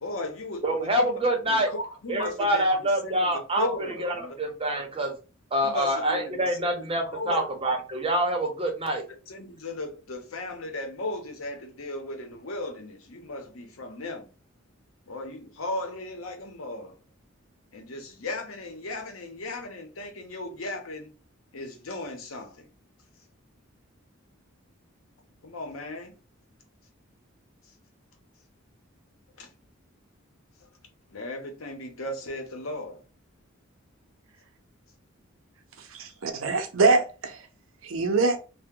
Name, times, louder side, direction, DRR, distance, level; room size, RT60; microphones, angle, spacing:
voice 1, 0.0-3.3 3.6-4.4 5.6-7.5 9.3-14.3 15.1-17.0 17.7-21.1 21.5-22.7 25.4-26.1 29.4-29.5 31.1-33.0, left 2 dB, 80° left, 0.8 m, -36 dB
voice 2, 0.6-1.7 2.1-3.7 4.0-5.1 5.5-9.0, right 1 dB, 25° right, 0.8 m, -26 dB
voice 3, 35.9-37.4 37.8-38.4, right 3 dB, 75° right, 0.6 m, -23 dB
2.8 x 2.1 x 3.6 m
head